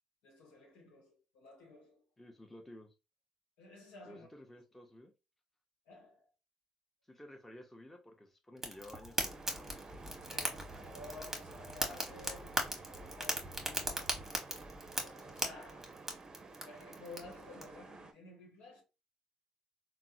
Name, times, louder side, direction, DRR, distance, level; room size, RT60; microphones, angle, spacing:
voice 1, 0.2-2.0 3.6-4.3 5.9-6.3 10.2-14.2 15.0-16.1 16.6-18.8, left 2 dB, 90° left, 1.0 m, -53 dB
voice 2, 2.2-2.9 4.1-5.1 7.1-10.0, left 1 dB, 10° left, 0.8 m, -53 dB
Fire, 8.6-17.6, right 1 dB, 15° right, 1.0 m, -39 dB
sound 1, 9.2-18.1, right 3 dB, 35° right, 0.6 m, -52 dB
3.5 x 2.1 x 2.6 m
supercardioid pair, 65°, 2 cm